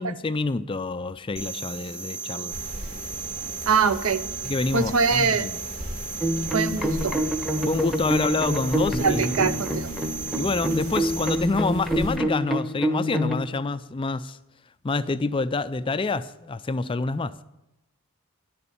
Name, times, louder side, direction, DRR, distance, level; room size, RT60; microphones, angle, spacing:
voice 1, 0.0-2.6 4.4-5.6 7.7-9.5 10.4-14.4 14.8-17.3, left 3 dB, 25° left, 0.3 m, -27 dB
sound 1, 1.4-11.4, right 5 dB, 90° right, 3.6 m, -36 dB
sound 2, 2.5-12.2, equal, 40° right, 1.8 m, -39 dB
voice 2, 3.7-4.2 4.7-5.5 6.5-7.2 9.0-9.9, right 5 dB, 65° right, 0.7 m, -23 dB
sound 3, 6.2-13.4, equal, ahead, 0.8 m, -27 dB
10.5 x 6.9 x 8.6 m
head